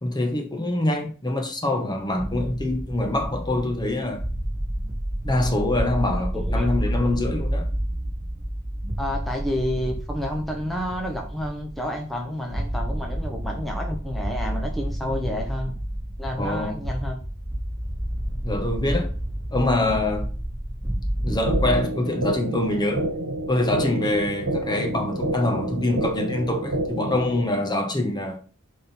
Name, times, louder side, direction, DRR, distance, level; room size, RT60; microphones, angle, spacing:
voice 1, 0.0-4.3 5.2-7.7 16.4-16.8 18.4-19.1 19.5-20.3 21.2-23.1 23.5-28.4, left 1 dB, 20° left, 1.2 m, -25 dB
sound 1, 2.0-21.8, right 1 dB, 15° right, 4.0 m, -29 dB
voice 2, 6.1-6.7 9.0-15.7 16.2-17.2, equal, ahead, 1.0 m, -30 dB
sound 2, 21.5-27.5, right 1 dB, 90° right, 1.2 m, -29 dB
11.0 x 3.7 x 4.4 m
head